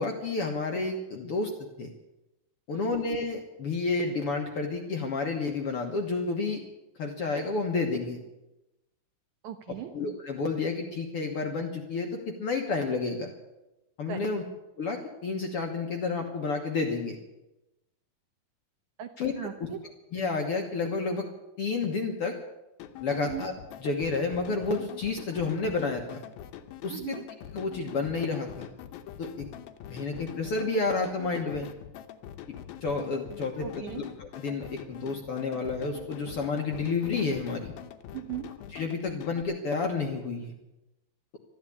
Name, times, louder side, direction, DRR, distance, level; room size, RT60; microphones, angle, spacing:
voice 1, 0.0-1.5 1.8-1.9 2.7-6.6 7.0-8.2 9.9-13.3 14.0-14.4 14.8-17.2 19.2-19.5 20.1-21.3 21.6-22.4 23.0-23.5 23.8-26.2 26.8-27.1 27.5-28.7 29.2-29.5 29.9-31.7 32.8-37.7 38.7-40.5, left 4 dB, 55° left, 2 dB, 1.6 m, -30 dB
voice 2, 9.4-9.9 14.1-14.3 19.0-19.1 19.4-19.8 23.2-23.5 26.9-27.2 33.6-34.1 38.1-38.5, right 11 dB, 70° right, 7 dB, 1.9 m, -37 dB
sound 1, 22.8-39.4, left 10 dB, 80° left, 2.7 m, -44 dB
13.5 x 12.0 x 8.5 m, 0.98 s
omnidirectional pair, 4.1 m